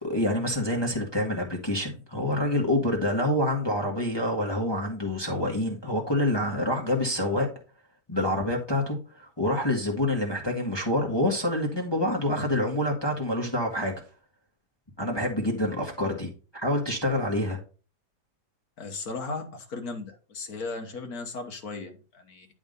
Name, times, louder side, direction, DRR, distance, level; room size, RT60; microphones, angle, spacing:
voice 1, 0.0-7.5 8.1-14.0 15.0-17.6, left 1 dB, 15° left, 1.5 m, -27 dB
voice 2, 18.8-22.5, left 3 dB, 65° left, 1.7 m, -36 dB
10.5 x 3.7 x 5.3 m
omnidirectional pair, 1.8 m